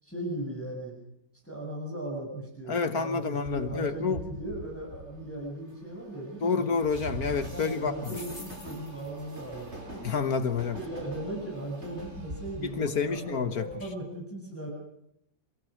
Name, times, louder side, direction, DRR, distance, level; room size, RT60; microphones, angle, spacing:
voice 1, 0.0-1.0 1.4-6.7 7.5-10.1 10.7-14.7, right 1 dB, 5° left, 7.7 m, -37 dB
voice 2, 2.7-4.2 6.4-7.9 10.0-10.8 12.6-13.7, left 5 dB, 60° left, 1.7 m, -28 dB
Train, 3.4-13.9, right 1 dB, 35° right, 4.9 m, -44 dB
sound 1, 8.0-9.9 10.8-11.1 12.0-12.1 12.5-12.6 13.0-13.1 13.7-13.9, left 2 dB, 25° left, 3.5 m, -49 dB
28.5 x 16.5 x 6.5 m
omnidirectional pair, 1.9 m